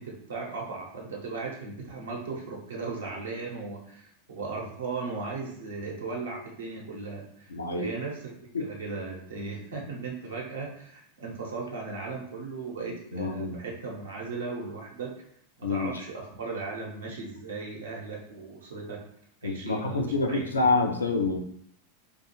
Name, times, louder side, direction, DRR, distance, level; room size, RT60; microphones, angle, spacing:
voice 1, 0.0-8.3 8.6-15.1 15.6-19.0 19.4-20.7, right 4 dB, 75° right, -1 dB, 0.7 m, -37 dB
voice 2, 7.5-7.9 8.5-8.7 13.1-13.6 15.6-16.0 19.4-21.4, left 3 dB, 85° left, 3 dB, 0.4 m, -27 dB
2.3 x 2.3 x 2.9 m, 0.67 s
hypercardioid pair, 95°, 0 cm